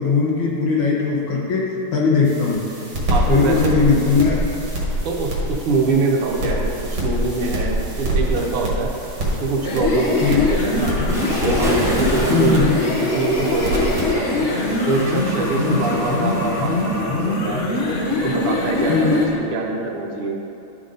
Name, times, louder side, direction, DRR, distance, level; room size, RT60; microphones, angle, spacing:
voice 1, 0.0-2.7 3.3-4.4 10.2-10.5 12.3-12.8 15.7-15.8 16.1-16.2 18.9-19.2, left 5 dB, 65° left, -3 dB, 1.9 m, -19 dB
sound 1, 2.2-14.1, right 1 dB, 60° right, 2.3 m, -26 dB
voice 2, 3.1-3.8 5.0-8.9 9.4-10.9 11.4-14.5 14.9-17.6 18.2-20.4, right 3 dB, 80° right, -2 dB, 1.9 m, -24 dB
sound 2, 9.5-19.3, left 2 dB, 50° left, 0.9 m, -23 dB
Waves surf, 11.1-17.0, right 1 dB, 5° right, 0.5 m, -30 dB
11.5 x 5.4 x 3.9 m, 2.9 s
omnidirectional pair, 2.4 m